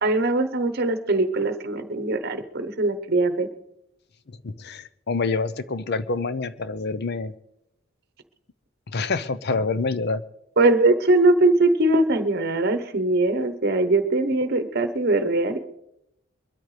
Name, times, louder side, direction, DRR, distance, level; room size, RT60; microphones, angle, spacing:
voice 1, 0.0-3.5 10.6-15.6, right 2 dB, 50° right, 10 dB, 1.0 m, -21 dB
voice 2, 4.4-7.3 8.9-10.2, left 4 dB, 50° left, 14 dB, 0.6 m, -27 dB
23.0 x 13.0 x 3.3 m, 0.82 s
head